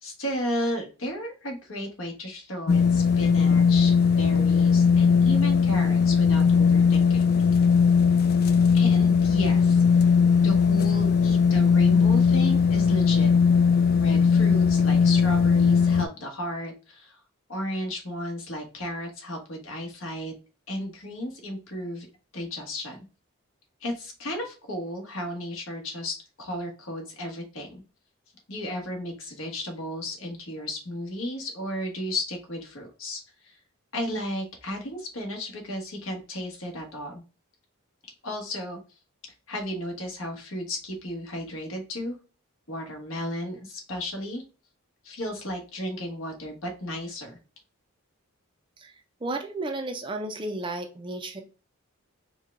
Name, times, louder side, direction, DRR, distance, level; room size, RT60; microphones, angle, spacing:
voice 1, 0.0-7.3 8.7-10.1 10.4-13.3 14.0-17.2 17.5-20.3 20.7-22.1 22.3-23.0 23.8-27.8 28.5-33.6 33.9-37.2 38.2-38.8 39.5-42.2 42.7-44.4 45.0-47.4, left 1 dB, 65° left, 2 dB, 1.3 m, -34 dB
sound 1, 2.7-16.1, left 6 dB, 45° left, 0.4 m, -19 dB
voice 2, 49.2-51.4, right 2 dB, 25° right, 5 dB, 0.5 m, -33 dB
4.5 x 2.2 x 3.6 m, 0.34 s
head